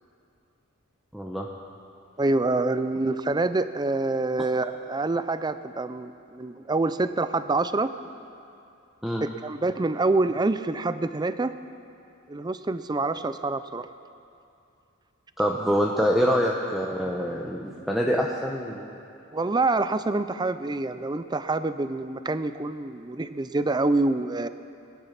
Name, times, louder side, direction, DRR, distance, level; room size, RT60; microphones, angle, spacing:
voice 1, 1.1-1.5 9.0-9.3 15.4-19.0, equal, ahead, -2 dB, 0.8 m, -25 dB
voice 2, 2.2-7.9 9.2-11.5 12.3-13.9 19.3-24.5, right 2 dB, 20° right, 12 dB, 0.5 m, -26 dB
21.0 x 11.0 x 5.9 m, 2.6 s
head